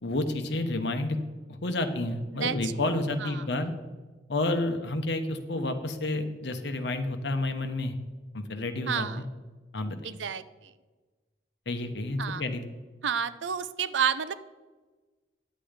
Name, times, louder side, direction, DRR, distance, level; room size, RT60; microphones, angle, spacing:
voice 1, 0.0-1.2 1.6-3.7 4.3-7.9 8.3-9.2 9.7-10.1 11.7-12.6, left 2 dB, 70° left, 7 dB, 1.0 m, -30 dB
voice 2, 2.3-3.4 8.9-9.2 10.0-10.7 12.2-12.4 13.0-14.3, right 7 dB, 85° right, 14 dB, 0.5 m, -31 dB
10.5 x 7.7 x 5.1 m, 1.3 s
head